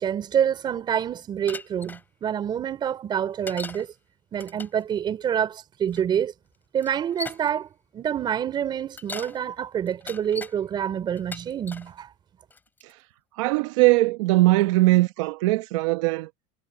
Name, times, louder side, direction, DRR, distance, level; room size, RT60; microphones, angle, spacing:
voice 1, 0.0-3.9 4.3-6.3 6.7-7.7 7.9-12.1, right 9 dB, 25° right, 3.8 m, -27 dB
Bicycle, 1.5-2.0 3.5-3.9 4.3-4.8 5.9-6.0 6.8-7.5 8.8-9.4 9.9-10.5 11.2-11.9 12.5-12.9, left 3 dB, 10° left, 2.9 m, -38 dB
voice 2, 13.3-16.3, right 20 dB, 75° right, 1.0 m, -20 dB
supercardioid pair, 150°, 17 cm